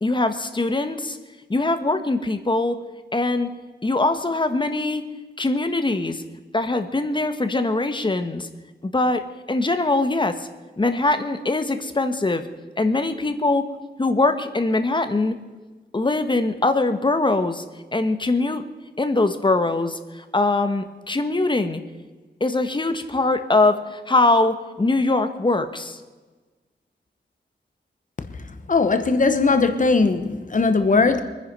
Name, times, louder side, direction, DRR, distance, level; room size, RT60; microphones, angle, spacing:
voice 1, 0.0-1.2 1.5-2.8 3.1-3.5 3.8-5.1 5.4-6.2 6.5-8.5 8.8-10.5 10.8-12.5 12.8-13.7 14.0-15.3 15.9-17.6 17.9-18.6 19.0-21.8 22.4-26.0, left 2 dB, 25° left, 1.2 m, -22 dB
voice 2, 28.7-31.2, left 4 dB, 45° left, 1.2 m, -19 dB
23.5 x 10.0 x 5.5 m
wide cardioid pair, 130°, 19 cm